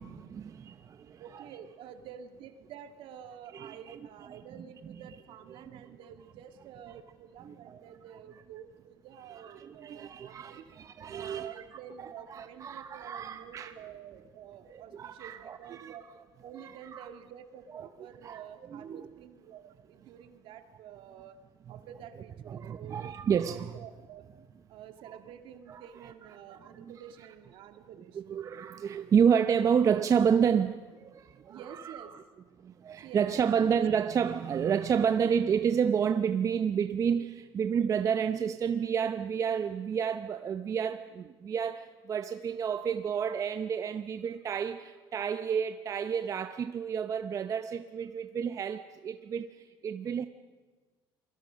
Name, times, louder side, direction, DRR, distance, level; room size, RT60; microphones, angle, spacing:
voice 1, 0.0-1.5 3.5-3.8 4.3-4.4 5.6-5.8 7.4-7.8 9.4-11.6 12.0-13.7 14.7-16.0 16.9-17.1 17.7-17.8 18.2-18.4 18.7-19.1 22.5-23.8 25.7-26.1 26.6-26.9 28.1-32.2 32.6-50.3, right 7 dB, 35° right, 0.8 m, -30 dB
voice 2, 1.2-10.6 11.1-16.0 16.4-21.4 21.7-24.3 24.7-28.2 31.5-32.2 33.0-33.9 34.5-34.6 35.0-35.1, right 9 dB, 65° right, 2.0 m, -49 dB
28.0 x 21.5 x 6.3 m
cardioid pair, 130°, 10 cm